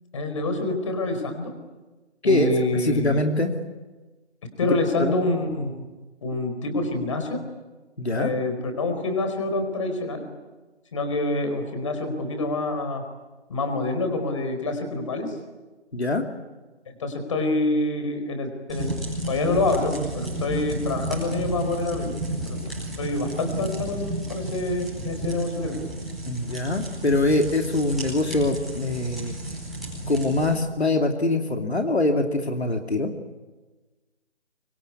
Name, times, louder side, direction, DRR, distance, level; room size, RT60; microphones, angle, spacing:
voice 1, 0.1-1.5 2.2-3.2 4.6-5.8 6.2-7.4 8.2-10.2 10.9-13.0 13.5-15.4 17.0-19.0 19.3-22.2 22.4-22.6 23.0-25.9, left 2 dB, 30° left, 6 dB, 4.5 m, -26 dB
voice 2, 2.2-3.5 5.0-5.2 8.0-8.3 15.9-16.2 26.3-29.4 30.1-33.1, left 2 dB, 70° left, 4 dB, 2.8 m, -23 dB
sound 1, 18.7-30.5, right 1 dB, ahead, 5.2 m, -32 dB
25.5 x 24.0 x 9.7 m, 1.2 s
figure-of-eight pair, 155°, 35 cm